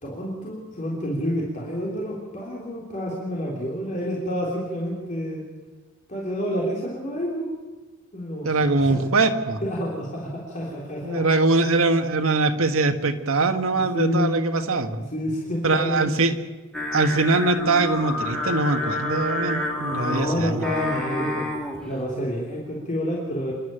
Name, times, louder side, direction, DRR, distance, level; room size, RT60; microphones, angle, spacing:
voice 1, 0.0-5.4 6.1-7.5 8.1-9.0 9.6-11.3 13.7-14.3 15.1-16.1 19.9-21.5 21.8-23.5, equal, 35° left, -4 dB, 3.5 m, -29 dB
voice 2, 8.4-9.6 11.0-15.0 15.6-16.3 16.9-20.6, right 3 dB, 75° right, 6 dB, 1.6 m, -22 dB
Singing, 16.7-21.9, left 1 dB, 5° left, 3.2 m, -29 dB
27.5 x 11.5 x 9.0 m, 1.3 s
head